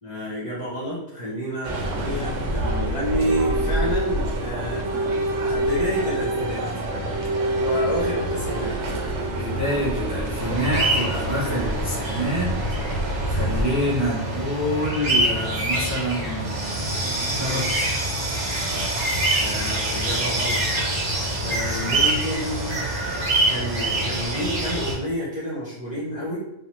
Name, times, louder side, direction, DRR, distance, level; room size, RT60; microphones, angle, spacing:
voice 1, 0.0-4.8 5.4-6.6 7.6-8.8 19.4-20.6 21.4-22.8 23.5-26.4, equal, 45° left, -6 dB, 0.5 m, -29 dB
sound 1, 1.6-13.6, right 1 dB, 90° right, 1.0 m, -26 dB
voice 2, 9.3-12.5 13.3-17.8, equal, 25° right, -5 dB, 0.3 m, -27 dB
sound 2, 10.4-24.9, right 1 dB, 65° right, 1.2 m, -25 dB
3.1 x 2.0 x 2.9 m, 0.88 s
omnidirectional pair, 1.3 m